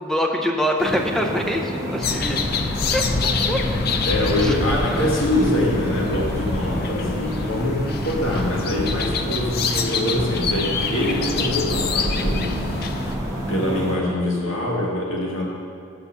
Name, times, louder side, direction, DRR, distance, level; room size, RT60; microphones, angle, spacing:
voice 1, 0.0-2.4 2.9-3.0 3.5-3.6 4.4-4.5, equal, ahead, 2 dB, 0.6 m, -24 dB
sound 1, 0.8-13.9, equal, 15° right, 1.6 m, -29 dB
sound 2, 2.0-13.2, left 4 dB, 50° left, 0.5 m, -26 dB
voice 2, 4.1-13.1 13.5-15.5, left 1 dB, 80° left, -2 dB, 1.8 m, -24 dB
7.0 x 6.6 x 6.8 m, 2.4 s
head